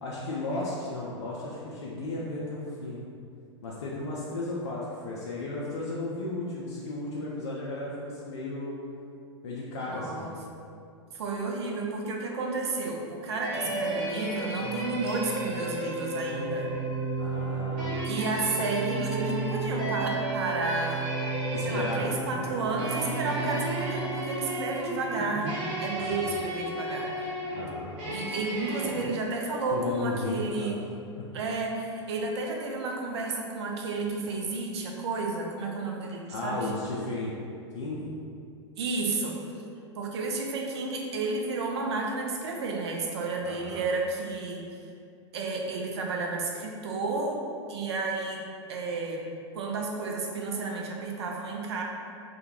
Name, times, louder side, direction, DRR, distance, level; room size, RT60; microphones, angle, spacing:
voice 1, 0.0-3.0 3.6-8.7 9.4-10.3 17.2-17.9 21.5-22.1 26.0-26.3 27.5-28.0 29.7-30.8 31.2-31.3 36.3-37.3 37.7-38.1 43.4-43.9, left 2 dB, 65° left, -5 dB, 0.4 m, -34 dB
voice 2, 9.9-10.3 11.1-16.7 18.0-21.1 21.6-25.5 25.8-27.3 28.1-30.8 31.3-36.7 38.8-39.4 40.0-44.6 45.3-47.4 47.7-48.4 48.7-49.2 49.5-51.8, right 3 dB, 60° right, 0 dB, 0.4 m, -32 dB
sound 1, 13.4-29.1, right 1 dB, 35° right, 0.8 m, -34 dB
sound 2, 15.1-26.0, right 5 dB, 10° right, 0.5 m, -35 dB
2.2 x 2.1 x 2.8 m, 2.4 s
figure-of-eight pair, 95°, 15 cm